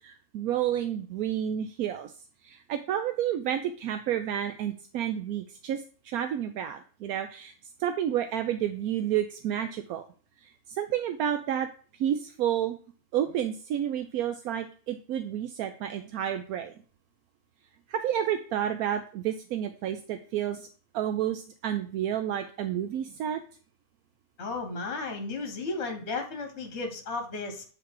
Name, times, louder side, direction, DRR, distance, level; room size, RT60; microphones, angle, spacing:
voice 1, 0.0-2.1 2.4-7.5 7.8-10.0 10.7-11.7 12.0-12.8 13.1-16.7 17.9-20.7 20.9-23.4, right 10 dB, 80° right, 7 dB, 1.1 m, -30 dB
voice 2, 24.4-27.6, left 3 dB, 50° left, 5 dB, 1.5 m, -34 dB
8.0 x 3.7 x 4.7 m, 0.40 s
omnidirectional pair, 1.5 m